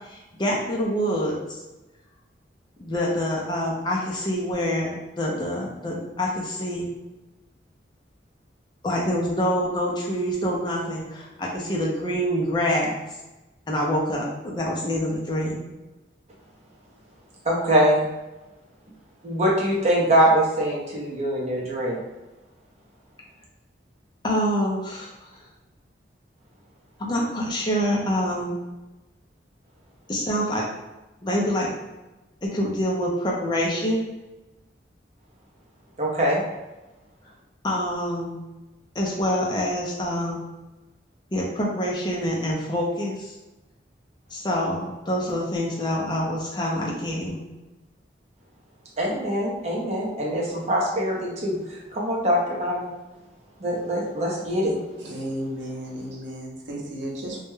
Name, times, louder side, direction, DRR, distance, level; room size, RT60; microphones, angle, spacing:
voice 1, 0.1-1.4 2.8-6.9 8.8-13.0 13.7-15.6 24.2-25.1 27.0-28.6 30.1-30.6 31.2-31.7 32.4-34.0 37.6-38.4 38.9-40.4 41.3-43.3 44.3-47.4, equal, 25° left, -3 dB, 0.5 m, -26 dB
voice 2, 17.4-18.0 19.2-22.0 36.0-36.4 49.0-52.9 53.6-54.7, right 1 dB, 35° right, -3 dB, 0.6 m, -23 dB
voice 3, 55.0-57.4, equal, 80° right, -1 dB, 0.6 m, -33 dB
2.2 x 2.1 x 3.0 m, 1.1 s
head